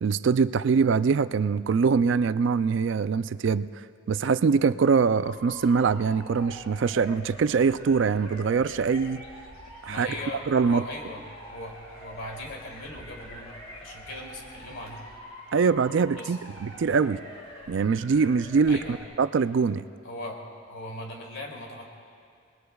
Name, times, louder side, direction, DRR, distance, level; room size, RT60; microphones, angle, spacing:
voice 1, 0.0-3.7 4.1-9.2 9.9-10.1 10.5-10.8 15.5-17.2 17.7-19.8, right 5 dB, 60° right, 14 dB, 0.3 m, -23 dB
Motor vehicle (road) / Siren, 5.2-19.0, equal, 30° left, 3.0 m, -46 dB
sound 1, 5.6-15.2, left 2 dB, 85° left, 1.8 m, -52 dB
voice 2, 9.8-11.2 11.5-13.5 13.8-15.0 16.2-16.4 18.7-19.0 20.0-20.4 20.7-21.9, left 1 dB, 65° left, -1 dB, 2.8 m, -39 dB
29.5 x 20.5 x 2.3 m, 2.3 s
head